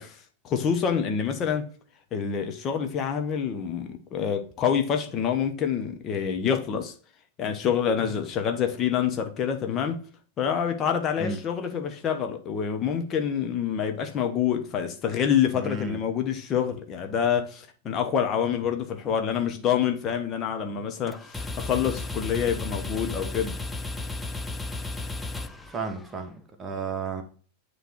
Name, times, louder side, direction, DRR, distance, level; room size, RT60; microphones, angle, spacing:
voice 1, 0.0-1.7 2.1-6.9 7.4-10.0 10.4-23.6, left 8 dB, 30° left, 0.9 m, -27 dB
voice 2, 15.5-16.0 25.7-27.2, right 3 dB, 20° right, 1.3 m, -33 dB
sound 1, 21.1-26.3, left 2 dB, 10° left, 0.6 m, -34 dB
9.1 x 3.2 x 4.3 m
figure-of-eight pair, 90°, 0 cm